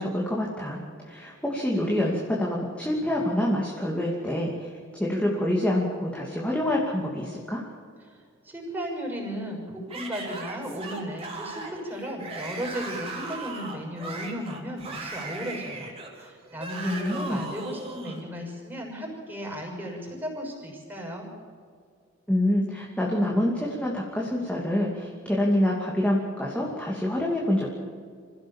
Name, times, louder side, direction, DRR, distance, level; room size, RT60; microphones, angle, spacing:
voice 1, 0.0-7.6 16.8-17.4 22.3-27.7, left 1 dB, 5° left, -3 dB, 2.7 m, -26 dB
voice 2, 8.4-21.3, equal, 10° right, -1 dB, 6.4 m, -35 dB
Yell / Screaming, 9.9-18.2, right 3 dB, 30° right, 3.9 m, -38 dB
26.5 x 16.0 x 7.4 m, 2.1 s
head